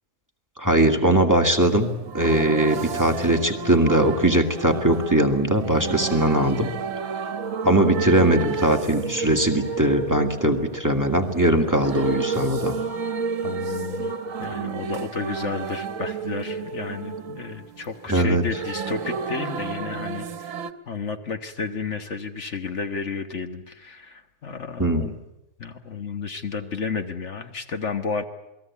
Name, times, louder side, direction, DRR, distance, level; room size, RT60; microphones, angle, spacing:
voice 1, 0.6-6.7 7.6-12.8 18.1-18.4 24.8-25.1, right 1 dB, 15° right, 4 dB, 1.9 m, -20 dB
sound 1, 1.6-20.7, right 5 dB, 70° right, 1.5 m, -31 dB
voice 2, 13.4-20.6 20.9-25.2 25.6-28.2, left 5 dB, 60° left, 8 dB, 1.5 m, -32 dB
28.0 x 20.0 x 8.4 m, 0.91 s
omnidirectional pair, 1.4 m